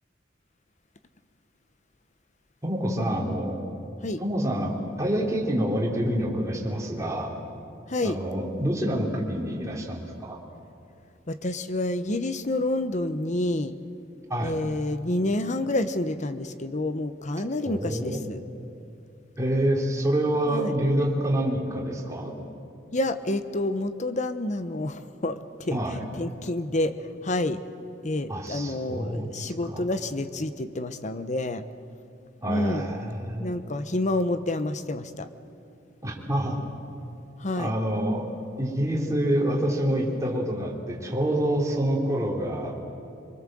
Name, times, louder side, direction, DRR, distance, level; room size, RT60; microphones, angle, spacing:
voice 1, 2.6-3.6 4.2-7.4 8.0-10.4 14.3-14.5 17.6-18.2 19.4-22.3 25.7-26.0 28.3-29.3 29.7-29.8 32.4-33.5 36.0-36.6 37.6-38.3 38.6-42.8, right 1 dB, 15° right, -2 dB, 3.6 m, -27 dB
voice 2, 7.9-8.2 11.3-13.8 14.4-18.4 20.5-20.7 22.9-25.8 26.2-27.0 27.2-27.6 28.0-31.6 32.5-32.9 33.4-35.3 37.4-37.7, left 1 dB, 40° left, 10 dB, 1.0 m, -28 dB
24.5 x 23.0 x 7.8 m, 2.6 s
head